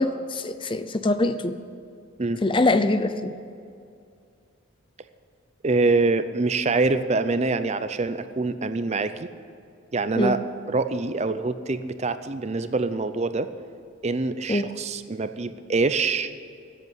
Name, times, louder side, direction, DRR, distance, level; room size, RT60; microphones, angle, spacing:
voice 1, 0.0-1.6 2.4-3.3 10.2-10.4 14.5-14.7, left 2 dB, 25° left, 11 dB, 0.5 m, -23 dB
voice 2, 5.6-9.3 9.9-10.4 10.7-13.5 14.0-16.3, right 3 dB, 30° right, 11 dB, 0.5 m, -25 dB
14.0 x 8.3 x 9.2 m, 2.4 s
head